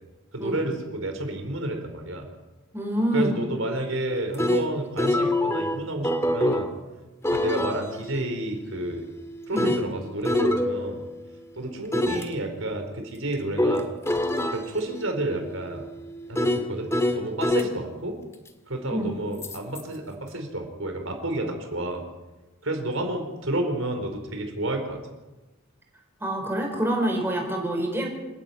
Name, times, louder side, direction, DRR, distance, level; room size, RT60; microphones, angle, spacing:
voice 1, 0.3-2.2 3.1-6.7 7.3-9.0 9.5-11.0 11.6-13.9 14.5-15.9 16.3-16.9 17.2-18.2 18.7-22.0 22.6-25.0, right 1 dB, 65° right, 4 dB, 4.6 m, -30 dB
voice 2, 2.7-3.3 9.5-9.7 18.9-19.1 26.2-28.1, right 1 dB, 10° right, 1 dB, 4.7 m, -26 dB
sound 1, 4.1-6.7 7.2-11.3 11.9-12.3 13.6-17.7 19.4-19.8, left 1 dB, 15° left, 1.7 m, -26 dB
27.5 x 14.0 x 9.5 m, 1.1 s
head